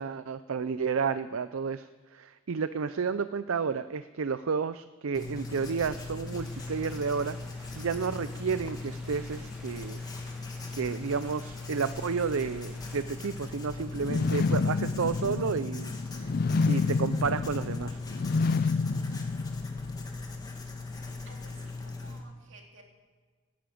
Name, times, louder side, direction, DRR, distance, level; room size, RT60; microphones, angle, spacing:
voice 1, 0.0-7.4 7.8-10.0 10.7-15.9 16.2-16.3 16.7-18.0 18.6-18.8, right 5 dB, 80° right, 13 dB, 0.5 m, -31 dB
Writing, 5.1-22.2, left 3 dB, 20° left, 1.6 m, -39 dB
sound 1, 6.2-13.0, equal, 5° right, 4.1 m, -54 dB
sound 2, 14.0-20.0, left 4 dB, 45° left, 0.4 m, -29 dB
voice 2, 21.3-22.8, right 3 dB, 65° right, 2 dB, 2.8 m, -55 dB
18.0 x 10.0 x 7.7 m, 1.5 s
head